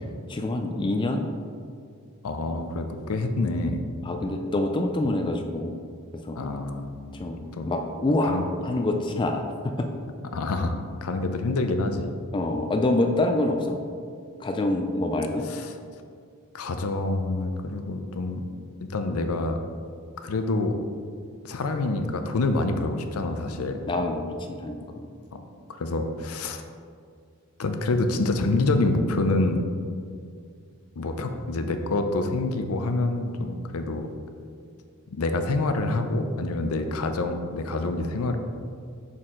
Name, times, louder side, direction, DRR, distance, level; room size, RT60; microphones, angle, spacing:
voice 1, 0.3-1.3 4.1-5.8 6.2-6.4 7.2-7.4 7.7-9.5 12.3-13.8 14.4-15.5 23.9-24.2 24.5-25.1, left 2 dB, 20° left, 4 dB, 0.3 m, -26 dB
voice 2, 2.2-3.9 6.4-7.1 7.6-7.7 8.3-8.5 10.3-12.1 15.4-15.7 16.5-18.4 18.8-19.6 20.2-20.8 21.4-23.8 25.3-25.4 25.8-26.6 27.6-29.6 31.0-34.1 35.1-38.4, left 2 dB, 80° left, 7 dB, 0.5 m, -27 dB
6.3 x 4.2 x 3.7 m, 2.2 s
head